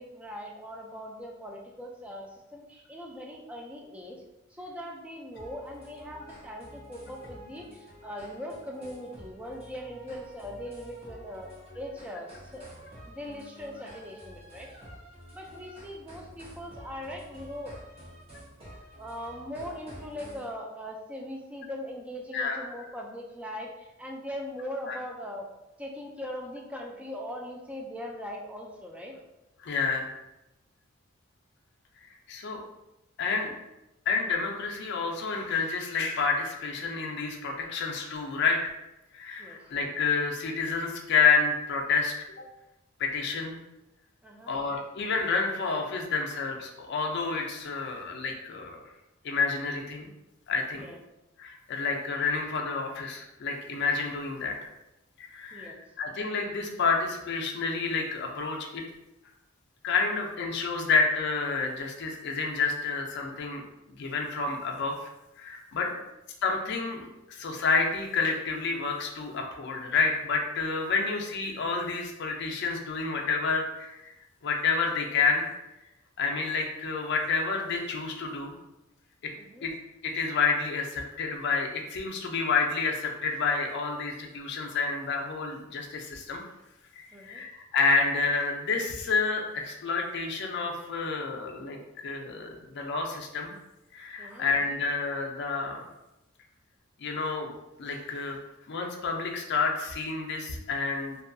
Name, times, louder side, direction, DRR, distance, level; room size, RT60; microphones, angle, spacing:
voice 1, 0.0-4.2 4.5-12.7 13.0-14.7 15.3-17.7 19.0-25.5 25.8-29.2 33.3-33.6 39.4-39.6 44.2-44.6 50.7-51.0 55.5-55.8 65.8-66.0 79.4-79.7 87.1-87.4 94.2-94.5, equal, 5° right, 0 dB, 0.3 m, -40 dB
sound 1, 5.3-20.5, equal, 30° right, 0.7 m, -49 dB
voice 2, 29.6-30.1 32.3-32.6 33.2-33.5 34.1-38.6 39.1-42.1 43.0-43.6 44.5-48.8 49.2-50.1 50.5-50.9 51.4-54.6 55.2-58.8 59.8-63.6 64.0-64.9 65.4-65.9 66.4-74.1 74.4-75.5 76.2-78.5 79.6-79.7 80.0-86.4 86.9-91.8 92.0-93.5 93.9-95.8 97.0-98.4 98.7-101.2, left 4 dB, 55° left, 1 dB, 0.4 m, -29 dB
2.7 x 2.3 x 2.5 m, 0.96 s
head